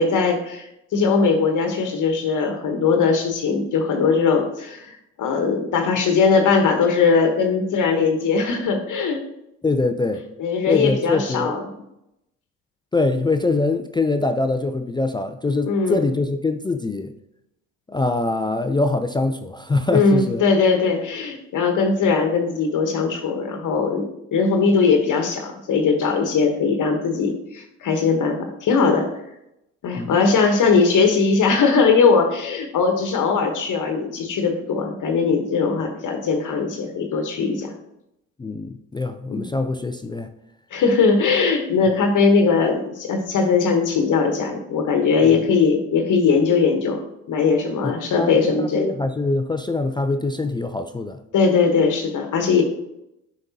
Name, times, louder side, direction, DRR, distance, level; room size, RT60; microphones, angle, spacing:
voice 1, 0.0-9.2 10.4-11.6 15.7-16.0 19.9-29.1 29.8-37.7 39.3-39.4 40.7-47.0 47.3-49.0 51.3-52.6, left 5 dB, 50° left, 4 dB, 1.1 m, -20 dB
voice 2, 9.6-10.2 10.7-11.5 12.9-17.1 17.9-20.4 30.0-30.2 38.4-40.3 45.2-45.4 47.8-48.3 48.7-51.2, left 3 dB, 10° left, 7 dB, 0.4 m, -23 dB
7.9 x 5.2 x 2.8 m, 0.83 s
hypercardioid pair, 60°, 40 cm